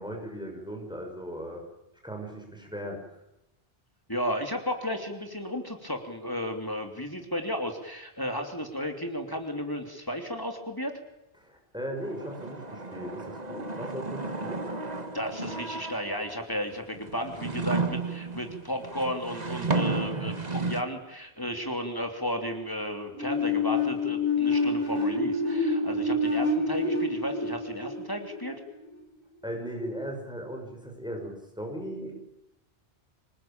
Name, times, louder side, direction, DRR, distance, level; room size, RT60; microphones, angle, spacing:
voice 1, 0.0-1.6 2.0-3.0 11.4-14.6 20.1-20.5 29.4-32.1, right 1 dB, 5° right, 2 dB, 6.3 m, -37 dB
voice 2, 4.1-11.0 15.1-28.6, equal, 20° left, 4 dB, 3.1 m, -33 dB
sound 1, 12.0-16.4 16.9-20.8, right 3 dB, 40° right, 1.8 m, -33 dB
sound 2, 23.1-28.8, left 2 dB, 55° left, 6.0 m, -27 dB
26.0 x 20.0 x 8.9 m, 0.92 s
omnidirectional pair, 1.1 m